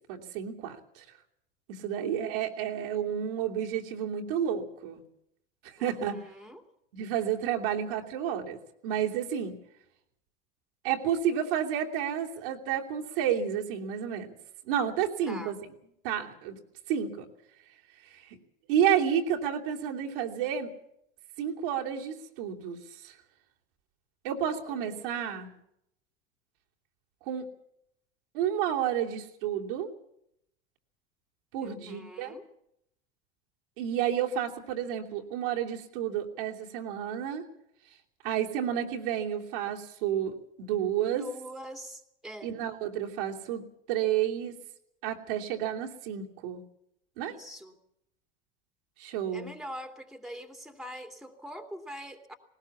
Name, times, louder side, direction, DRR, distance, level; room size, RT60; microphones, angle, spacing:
voice 1, 0.1-1.0 1.7-5.0 5.6-6.2 6.9-8.6 8.8-9.5 10.8-14.3 14.6-15.6 16.0-16.6 16.9-17.2 18.1-18.4 18.7-20.7 21.4-23.1 24.2-25.5 27.3-27.5 28.3-29.9 31.5-32.3 33.8-37.4 38.2-41.3 42.4-43.6 43.9-44.6 45.0-46.6 47.2-47.3 49.0-49.5, right 9 dB, 70° right, -1 dB, 3.0 m, -30 dB
voice 2, 2.0-2.6 5.8-6.6 15.3-15.5 24.7-25.6 31.6-32.5 41.1-42.5 47.2-47.8 49.3-52.4, equal, ahead, 5 dB, 2.6 m, -44 dB
19.5 x 19.0 x 7.3 m, 0.77 s
hypercardioid pair, 80°, 29 cm